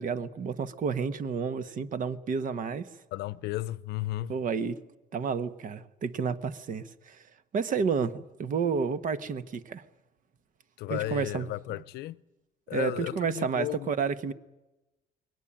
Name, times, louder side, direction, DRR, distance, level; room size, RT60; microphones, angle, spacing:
voice 1, 0.0-2.9 4.3-4.8 5.1-7.2 7.5-9.8 10.9-11.5 12.7-14.3, right 6 dB, 50° right, 1.3 m, -30 dB
voice 2, 3.1-4.3 10.8-12.2 12.7-13.9, left 16 dB, 80° left, 0.8 m, -34 dB
22.0 x 19.0 x 8.9 m
cardioid pair, 110°, 17 cm